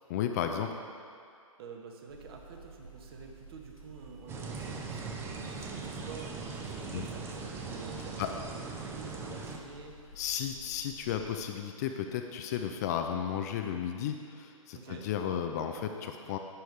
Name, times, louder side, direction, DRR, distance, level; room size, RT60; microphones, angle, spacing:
voice 1, 0.1-0.7 6.9-7.1 8.2-8.3 10.1-16.4, left 9 dB, 30° left, 5 dB, 0.5 m, -34 dB
voice 2, 1.6-10.0 14.7-15.1, right 5 dB, 45° right, 2 dB, 1.2 m, -48 dB
sound 1, 2.1-11.4, left 1 dB, 90° left, 1.8 m, -53 dB
sound 2, 4.3-9.6, right 4 dB, 15° right, 0.7 m, -40 dB
11.5 x 9.1 x 3.4 m, 2.3 s
figure-of-eight pair, 125°, 18 cm